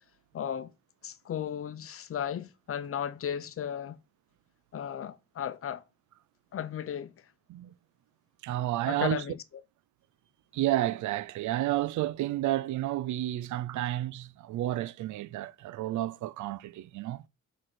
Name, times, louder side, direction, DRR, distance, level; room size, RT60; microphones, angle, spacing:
voice 1, 0.3-0.7 1.0-4.0 4.7-5.8 6.5-7.1 8.9-9.4, left 9 dB, 45° left, 0.8 m, -35 dB
voice 2, 8.4-9.2 10.5-17.2, right 14 dB, 75° right, 0.5 m, -31 dB
6.1 x 3.9 x 6.2 m
cardioid pair, 90°, 30 cm